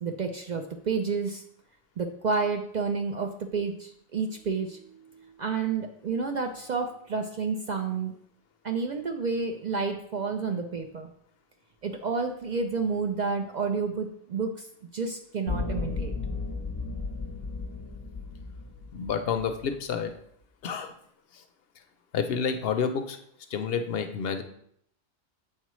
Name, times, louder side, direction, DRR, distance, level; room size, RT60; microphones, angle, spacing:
voice 1, 0.0-1.4 2.0-8.1 8.6-11.1 11.8-14.7 14.9-16.1, right 4 dB, 55° right, 4 dB, 0.5 m, -30 dB
FX Dullhit pimped, 15.5-19.8, left 4 dB, 30° left, 0.5 m, -34 dB
voice 2, 18.9-20.1 20.6-20.9 21.3-21.4 22.1-23.2 23.5-24.4, left 6 dB, 65° left, 7 dB, 0.8 m, -29 dB
7.4 x 4.5 x 3.0 m, 0.69 s
omnidirectional pair, 1.1 m